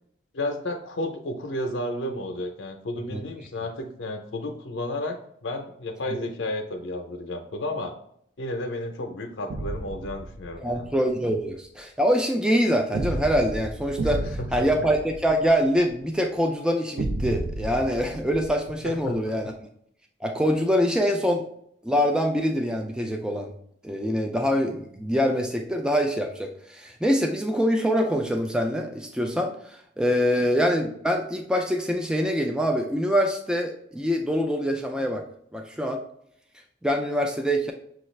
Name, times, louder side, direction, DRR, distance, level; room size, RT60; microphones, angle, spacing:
voice 1, 0.3-7.9 8.4-10.9 14.0-14.7 18.8-19.2, left 1 dB, 85° left, 4 dB, 0.6 m, -32 dB
sound 1, 9.5-10.9 12.9-15.9 17.0-19.1, right 2 dB, 85° right, 0.5 m, -32 dB
voice 2, 10.6-14.2 14.5-19.5 20.2-21.4 21.8-23.5 23.8-35.2 35.5-36.0 36.8-37.7, equal, 5° right, 3 dB, 0.3 m, -24 dB
6.2 x 2.4 x 3.1 m, 0.69 s
head